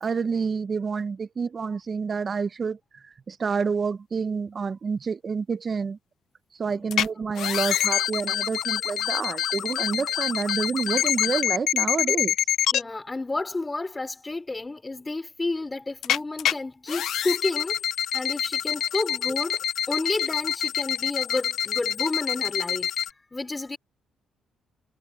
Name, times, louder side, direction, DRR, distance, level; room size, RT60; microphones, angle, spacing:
voice 1, 0.0-6.0 6.5-12.3, right 5 dB, 40° right, 0.9 m, -28 dB
voice 2, 6.7-7.1 12.7-17.8 18.1-19.6 19.9-22.9 23.3-23.8, left 2 dB, 20° left, 3.7 m, -31 dB
sound 1, 6.9-7.1 7.4-12.8 16.0-16.5 16.9-23.1, left 10 dB, 75° left, 0.6 m, -26 dB
cardioid pair, 90°, 0 cm